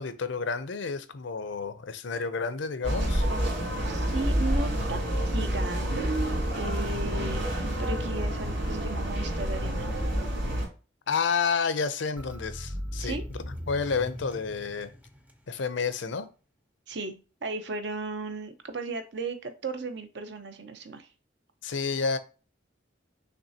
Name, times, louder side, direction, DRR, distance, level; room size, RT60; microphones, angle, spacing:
voice 1, 0.0-3.3 11.1-14.9 15.5-16.3 21.6-22.2, left 5 dB, 70° left, 0.6 m, -30 dB
sound 1, 2.8-10.7, equal, 80° right, 2.6 m, -28 dB
voice 2, 3.5-6.1 6.5-9.9 13.0-13.2 16.9-17.2 17.4-21.1, right 3 dB, 60° right, 0.8 m, -36 dB
sound 2, 6.2-9.2 12.2-15.6, equal, 10° right, 0.5 m, -38 dB
6.0 x 3.2 x 2.7 m
head